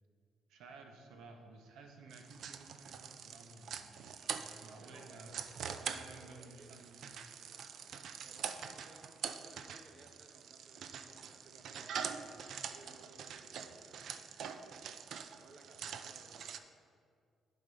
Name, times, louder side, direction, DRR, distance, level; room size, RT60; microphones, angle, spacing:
voice 1, 0.5-5.4 5.8-7.3, right 3 dB, 85° right, 3 dB, 0.8 m, -55 dB
sound 1, 2.1-16.6, right 7 dB, 70° right, 0.4 m, -45 dB
voice 2, 4.8-6.9 8.2-14.1 15.4-16.6, right 3 dB, 55° right, 5 dB, 0.8 m, -60 dB
10.5 x 4.1 x 4.0 m, 2.2 s
cardioid pair, 90°, 0 cm